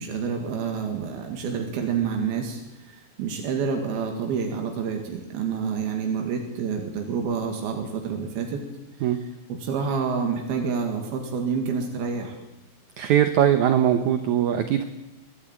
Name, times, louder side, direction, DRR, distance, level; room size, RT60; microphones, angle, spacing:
voice 1, 0.0-2.6 2.9-8.6 9.5-12.4, right 6 dB, 85° right, 3 dB, 4.0 m, -28 dB
voice 2, 13.0-14.8, right 10 dB, 70° right, 8 dB, 2.1 m, -21 dB
25.5 x 12.0 x 9.0 m, 0.98 s
omnidirectional pair, 4.2 m